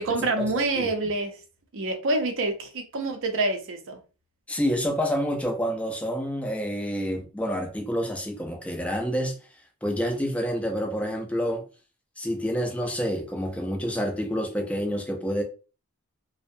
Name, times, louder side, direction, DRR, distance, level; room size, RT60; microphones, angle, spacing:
voice 1, 0.0-1.4 1.7-4.0, right 2 dB, 60° right, 0.5 m, -27 dB
voice 2, 0.6-0.9 4.5-9.3 9.8-11.7 12.2-15.4, equal, 5° left, 0.4 m, -28 dB
2.6 x 2.0 x 2.5 m
head